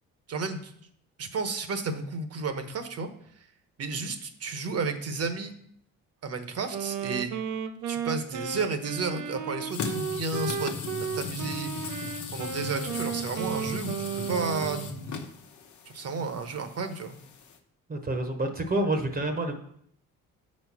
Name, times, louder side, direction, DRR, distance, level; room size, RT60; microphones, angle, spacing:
voice 1, 0.3-0.7 1.2-3.1 3.4-3.5 3.8-5.5 6.2-7.3 7.9-10.7 11.1-15.3 15.8-17.2, right 4 dB, 55° right, 8 dB, 1.1 m, -32 dB
Wind instrument woodwind instrument, 6.7-14.9, right 7 dB, 75° right, 0.6 m, -34 dB
sound 1, 9.7-17.6, left 6 dB, 70° left, 0.9 m, -38 dB
voice 2, 17.9-19.5, right 1 dB, 30° right, 5 dB, 1.0 m, -28 dB
6.2 x 4.3 x 6.1 m, 0.68 s
cardioid pair, 90°, 30 cm